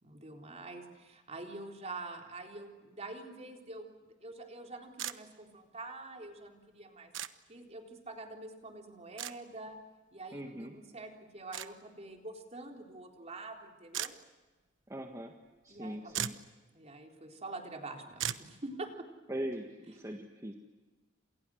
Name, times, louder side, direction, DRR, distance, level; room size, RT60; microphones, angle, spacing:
voice 1, 0.0-7.1 7.5-9.8 10.1-14.1 15.7-16.3 16.7-19.1, right 2 dB, 35° right, 2 dB, 3.9 m, -46 dB
sound 1, 5.0-5.2 7.1-7.3 9.2-9.3 11.5-11.7 13.9-14.1 15.8-15.9 16.1-16.5 18.2-18.5, right 10 dB, 90° right, 1.1 m, -36 dB
voice 2, 10.3-10.7 14.9-15.4 15.6-16.4 19.3-20.5, right 1 dB, 15° right, 3 dB, 1.7 m, -40 dB
29.5 x 27.5 x 6.4 m, 1.3 s
head